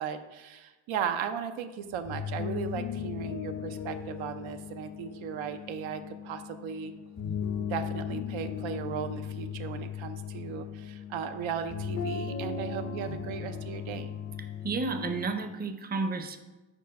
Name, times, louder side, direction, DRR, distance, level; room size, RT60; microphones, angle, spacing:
voice 1, 0.0-6.9 7.6-14.1, right 8 dB, 90° right, 8 dB, 0.6 m, -36 dB
sound 1, 1.9-15.3, left 7 dB, 35° left, 0.6 m, -37 dB
voice 2, 14.6-16.4, right 3 dB, 20° right, 8 dB, 0.5 m, -31 dB
4.6 x 4.5 x 5.1 m, 1.2 s
cardioid pair, 90°, 46 cm